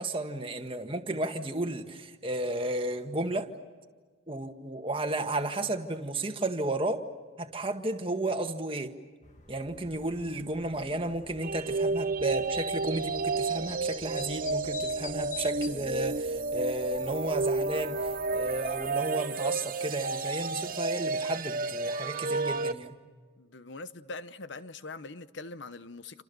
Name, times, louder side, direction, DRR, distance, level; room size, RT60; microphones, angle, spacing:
voice 1, 0.0-3.5 4.3-7.0 7.4-8.9 9.5-23.0, right 2 dB, 25° right, 1.7 m, -33 dB
sound 1, 9.2-18.9, left 5 dB, 35° left, 1.9 m, -49 dB
sound 2, 11.4-22.7, right 3 dB, 45° right, 0.9 m, -31 dB
voice 2, 23.4-26.2, left 3 dB, 65° left, 1.0 m, -42 dB
29.0 x 27.0 x 6.9 m
head